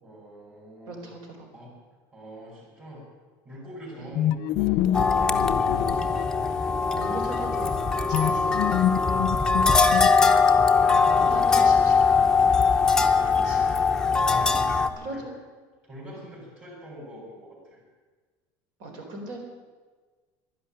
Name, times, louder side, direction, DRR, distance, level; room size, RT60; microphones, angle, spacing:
voice 1, 0.0-1.1 1.5-1.8 2.1-3.1 3.4-5.1 9.4-11.6 11.9-12.2 14.0-15.2 15.8-17.8, equal, 20° right, -6 dB, 4.8 m, -45 dB
voice 2, 0.9-1.5 4.0-4.2 5.9-6.2 6.9-7.7 8.1-8.8 10.3-10.5 11.1-12.4 13.2-13.7 15.0-15.4 16.1-16.3 18.8-19.4, right 2 dB, 60° right, 3 dB, 4.3 m, -39 dB
sound 1, 4.1-6.7 8.1-10.6, left 12 dB, 50° left, 0.4 m, -27 dB
sound 2, 4.9-14.9, left 4 dB, 5° left, 0.7 m, -21 dB
12.0 x 11.0 x 10.0 m, 1.4 s
cardioid pair, 170°, 9 cm